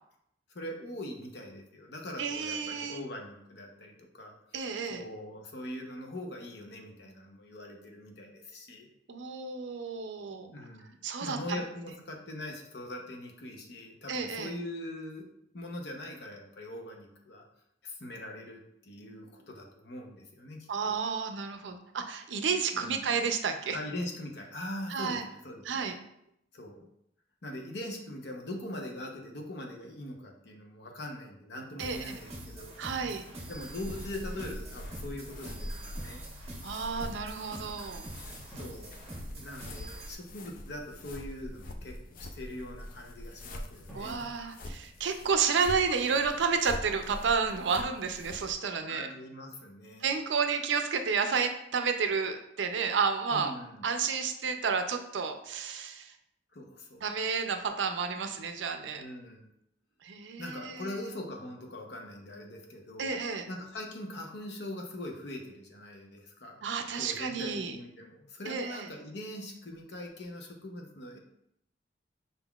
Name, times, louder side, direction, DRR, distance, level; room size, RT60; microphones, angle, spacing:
voice 1, 0.5-4.3 4.9-8.9 10.5-15.3 15.5-17.4 17.8-21.0 22.8-23.1 23.7-25.9 26.5-26.8 27.4-32.7 33.5-36.2 38.3-39.0 39.4-44.3 48.9-50.1 53.3-53.8 56.5-57.0 59.0-59.5 60.4-63.1 63.5-66.6 66.9-71.2, left 1 dB, 65° left, 2 dB, 0.8 m, -42 dB
voice 2, 2.2-3.0 4.5-5.0 9.1-10.5 11.0-11.6 14.1-14.5 20.7-23.8 24.9-25.2 25.6-26.0 31.8-32.2 32.8-33.2 36.6-38.0 43.9-49.1 50.0-53.5 53.8-56.1 57.0-59.0 60.0-61.0 63.0-63.5 66.6-67.8 68.5-68.9, right 5 dB, 80° right, 7 dB, 0.5 m, -31 dB
sound 1, 31.8-40.1, right 1 dB, 35° right, 1.4 m, -45 dB
sound 2, 33.0-34.6 38.5-40.4 43.9-46.1, equal, 10° left, 1.1 m, -58 dB
sound 3, 33.5-48.5, left 1 dB, 50° left, 0.4 m, -44 dB
5.5 x 3.7 x 2.3 m, 0.76 s
head